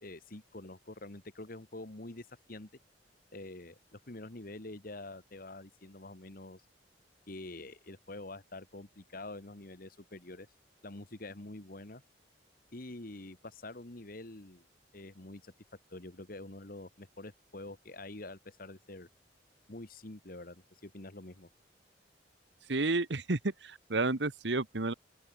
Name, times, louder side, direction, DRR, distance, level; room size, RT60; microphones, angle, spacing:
voice 1, 0.0-2.7 3.3-6.6 7.3-10.5 10.8-12.0 12.7-14.7 14.9-15.5 15.9-19.1 19.7-21.5, left 2 dB, 50° left, 1.8 m, -46 dB
voice 2, 22.7-24.9, right 3 dB, 70° right, 1.3 m, -31 dB
open air
head